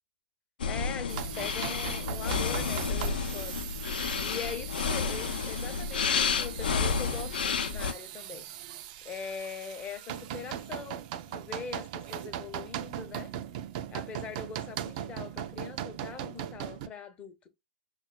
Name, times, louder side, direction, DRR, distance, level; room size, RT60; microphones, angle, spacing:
sound 1, 0.6-7.9, left 5 dB, 70° left, 0.6 m, -31 dB
voice 1, 0.7-3.6 4.2-8.4 9.0-13.3 13.9-17.5, left 6 dB, 25° left, 0.6 m, -42 dB
sound 2, 1.1-16.9, right 11 dB, 45° right, 0.4 m, -39 dB
6.2 x 2.2 x 2.2 m
hypercardioid pair, 110°, 5 cm